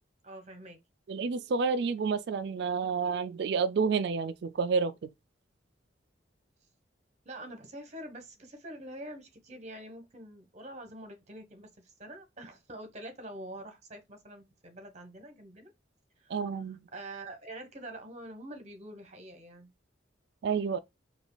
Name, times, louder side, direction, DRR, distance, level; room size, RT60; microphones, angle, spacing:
voice 1, 0.2-0.8 7.2-15.7 16.2-16.4 16.9-19.7, right 1 dB, 40° right, 1.0 m, -45 dB
voice 2, 1.1-5.1 16.3-16.8 20.4-20.8, right 5 dB, 60° right, 0.4 m, -29 dB
4.9 x 2.4 x 2.2 m
head